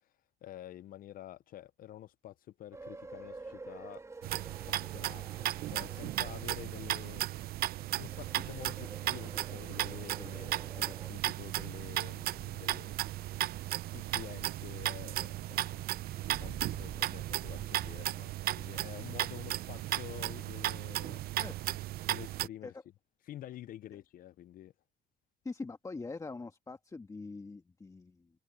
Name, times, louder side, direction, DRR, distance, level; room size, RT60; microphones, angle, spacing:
voice 1, 0.4-4.0 4.7-7.5 7.9-13.3 13.9-21.2 22.1-22.8 23.3-24.7, left 12 dB, 55° left, 0.6 m, -49 dB
sound 1, 2.7-11.1, right 3 dB, 15° right, 2.6 m, -50 dB
sound 2, 4.2-22.5, right 15 dB, 65° right, 0.6 m, -36 dB
Purr, 12.1-17.9, right 5 dB, 35° right, 6.1 m, -51 dB
voice 2, 21.4-21.8 22.6-22.7 25.4-28.3, left 3 dB, 20° left, 1.9 m, -43 dB
cardioid pair, 110°, 17 cm